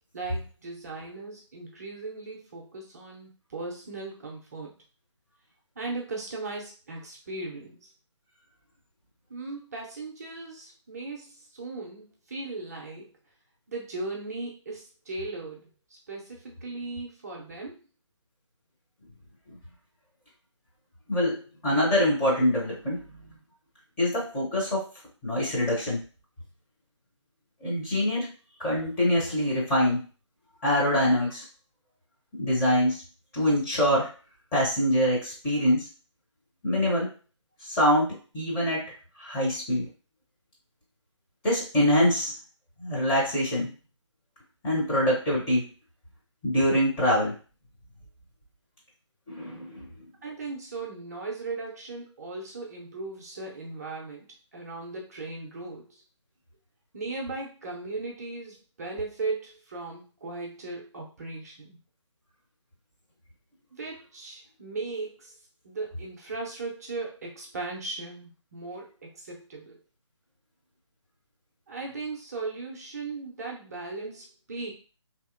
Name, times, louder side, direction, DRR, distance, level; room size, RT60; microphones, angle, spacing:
voice 1, 0.1-4.7 5.8-7.9 9.3-13.1 13.7-17.8 50.2-54.3 54.5-56.0 56.9-61.8 63.7-65.3 65.6-69.8 71.7-74.7, right 3 dB, 30° right, -1 dB, 0.6 m, -37 dB
voice 2, 21.1-23.0 24.0-24.9 25.2-26.0 27.6-28.3 28.6-30.1 30.6-31.4 32.4-33.0 33.3-34.1 34.5-35.9 36.6-37.1 37.6-38.9 39.2-39.9 41.4-42.3 42.8-43.7 44.6-45.7 46.4-47.3 49.3-49.9, equal, 10° left, -6 dB, 0.7 m, -24 dB
2.8 x 2.7 x 2.5 m, 0.35 s
figure-of-eight pair, 150°, 16 cm